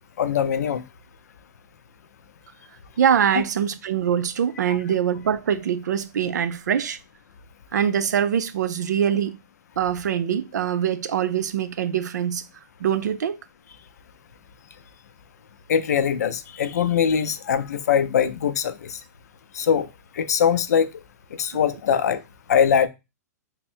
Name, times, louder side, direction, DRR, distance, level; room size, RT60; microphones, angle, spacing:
voice 1, 0.2-0.8 4.7-4.8 15.7-19.0 19.5-19.9 20.2-20.9 21.4-22.2 22.5-22.9, left 8 dB, 65° left, 0.5 m, -22 dB
voice 2, 3.0-7.0 7.7-9.4 9.8-12.4 12.8-13.4 21.5-21.6, right 8 dB, 85° right, 0.5 m, -23 dB
3.6 x 2.1 x 4.3 m
hypercardioid pair, 180°, 9 cm